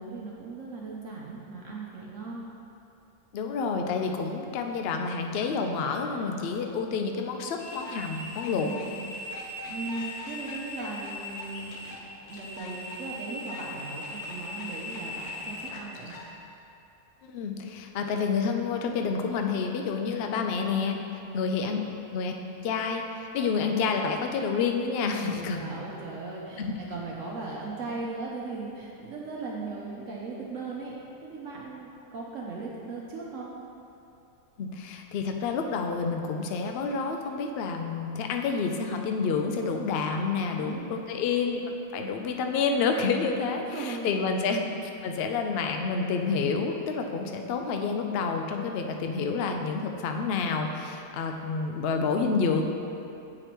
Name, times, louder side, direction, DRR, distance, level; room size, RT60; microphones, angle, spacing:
voice 1, 0.0-2.4 8.6-8.9 9.6-12.0 12.3-16.1 21.2-21.4 25.1-30.9 31.2-33.5 40.5-40.9 43.7-44.1, right 3 dB, 65° right, -3 dB, 1.0 m, -38 dB
voice 2, 3.3-8.7 17.3-21.0 21.3-21.8 22.1-22.3 22.6-25.6 26.6-26.7 34.6-44.7 45.0-52.7, left 5 dB, 65° left, 4 dB, 0.6 m, -29 dB
sound 1, 7.6-16.3, left 2 dB, 90° left, 1.3 m, -39 dB
8.5 x 4.9 x 3.0 m, 2.7 s
omnidirectional pair, 1.6 m